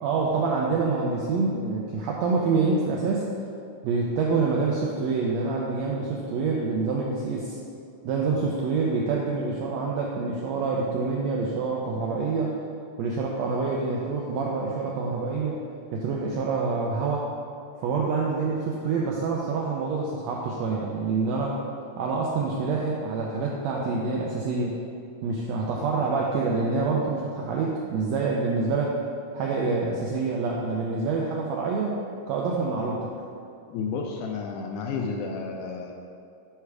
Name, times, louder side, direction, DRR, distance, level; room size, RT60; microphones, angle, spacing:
voice 1, 0.0-3.3 3.8-7.6 8.0-12.5 13.0-15.6 15.9-17.3 17.8-21.6 22.0-24.7 25.2-29.0 29.3-32.0 32.3-33.1, right 4 dB, 85° right, -2 dB, 1.5 m, -26 dB
voice 2, 33.7-35.9, left 5 dB, 80° left, 2 dB, 1.8 m, -31 dB
9.6 x 3.4 x 4.8 m, 2.5 s
omnidirectional pair, 3.7 m